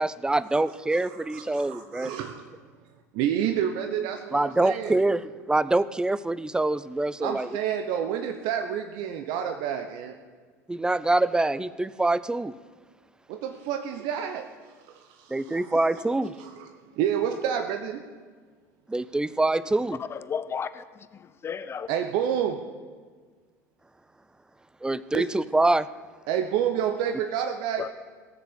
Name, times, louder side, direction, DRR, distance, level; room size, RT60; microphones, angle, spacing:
voice 1, 0.0-2.1 4.3-7.5 10.7-12.5 15.3-16.3 18.9-20.0 24.8-25.9, right 2 dB, 10° right, 18 dB, 0.5 m, -25 dB
voice 2, 0.9-2.5 3.1-5.0 7.2-10.2 13.3-14.5 14.9-15.9 16.4-16.7 17.0-18.0 21.9-22.6 25.1-25.3 26.3-27.9, right 9 dB, 60° right, 6 dB, 1.0 m, -29 dB
voice 3, 20.1-20.8 21.1-21.9 27.8-27.9, left 7 dB, 30° left, 14 dB, 0.8 m, -33 dB
17.5 x 6.9 x 8.2 m, 1.5 s
hypercardioid pair, 80°, 9 cm